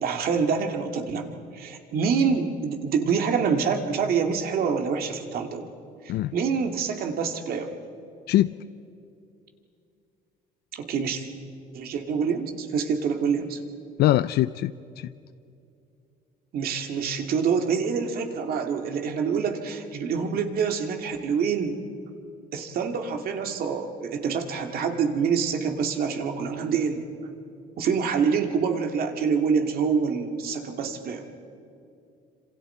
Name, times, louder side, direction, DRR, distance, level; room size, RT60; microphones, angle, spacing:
voice 1, 0.0-1.3 1.5-5.7 6.3-7.7 10.7-11.3 11.7-13.6 16.5-21.8 22.5-27.3 27.8-31.2, right 6 dB, 60° right, 4 dB, 2.3 m, -26 dB
voice 2, 14.0-14.7 15.0-15.1, left 14 dB, 70° left, 14 dB, 0.5 m, -22 dB
27.0 x 26.5 x 4.5 m, 2.5 s
cardioid pair, 110°, 17 cm